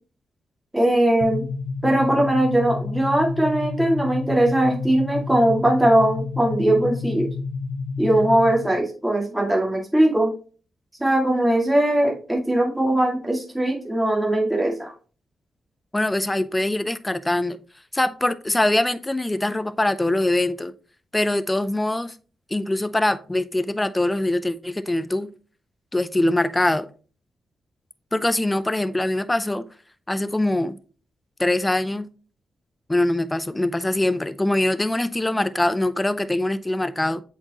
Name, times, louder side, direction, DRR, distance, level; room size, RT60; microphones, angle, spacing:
voice 1, 0.7-1.5 1.8-7.3 8.0-10.3 11.0-14.9, right 1 dB, 10° right, 2.2 m, -20 dB
sound 1, 1.2-8.8, left 4 dB, 70° left, 0.9 m, -30 dB
voice 2, 15.9-17.6 17.9-20.7 21.1-22.1 22.5-25.3 25.9-26.9 28.1-29.6 30.1-30.8 31.4-32.1 32.9-37.2, left 1 dB, 15° left, 0.5 m, -23 dB
7.6 x 4.6 x 3.0 m
cardioid pair, 75°, 0 cm